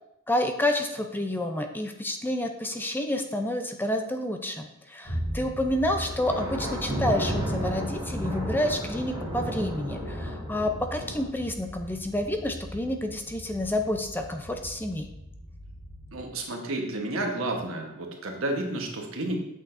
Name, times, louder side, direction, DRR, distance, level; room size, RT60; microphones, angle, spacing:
voice 1, 0.3-15.1, left 1 dB, 10° left, 5 dB, 0.5 m, -29 dB
sound 1, 5.0-16.2, equal, 75° left, 2.2 m, -39 dB
Thunder, 5.9-11.2, equal, 20° right, 2.2 m, -33 dB
voice 2, 16.1-19.4, right 2 dB, 80° right, 2 dB, 1.2 m, -31 dB
8.1 x 6.1 x 2.6 m, 0.83 s
head